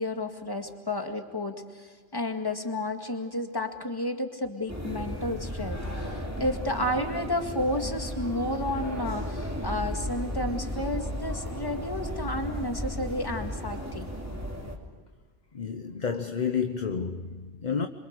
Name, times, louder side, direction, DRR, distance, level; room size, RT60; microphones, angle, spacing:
voice 1, 0.0-14.1, left 1 dB, 20° left, 2.0 m, -32 dB
sound 1, 4.7-14.8, equal, 15° right, 2.7 m, -34 dB
voice 2, 15.5-17.9, left 6 dB, 40° left, 1.0 m, -30 dB
27.0 x 25.0 x 6.7 m
omnidirectional pair, 1.2 m